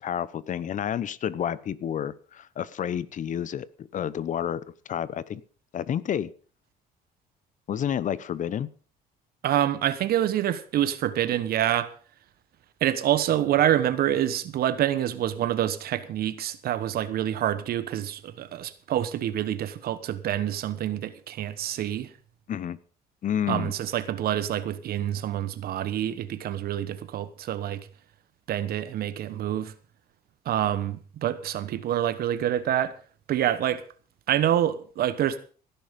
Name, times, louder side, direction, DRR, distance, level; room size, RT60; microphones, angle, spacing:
voice 1, 0.0-5.4 5.7-6.3 7.7-8.7 22.5-22.8 23.2-23.7, left 9 dB, 50° left, 1.0 m, -30 dB
voice 2, 9.4-11.9 12.8-22.1 23.5-27.9 28.5-29.7 30.4-32.9 33.3-33.8 34.3-35.4, right 11 dB, 65° right, 1.2 m, -26 dB
17.0 x 10.5 x 5.3 m
cardioid pair, 110°, 17 cm